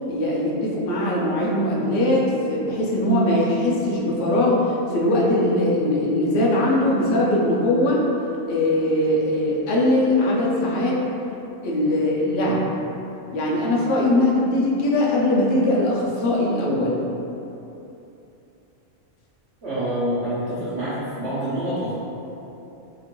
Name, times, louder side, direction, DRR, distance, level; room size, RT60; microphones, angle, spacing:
voice 1, 0.1-8.0 8.5-11.0 11.6-12.6 13.3-17.0, left 1 dB, 65° left, -4 dB, 0.8 m, -21 dB
voice 2, 19.6-21.9, right 1 dB, 65° right, -12 dB, 0.9 m, -26 dB
2.9 x 2.5 x 2.9 m, 2.9 s
omnidirectional pair, 1.3 m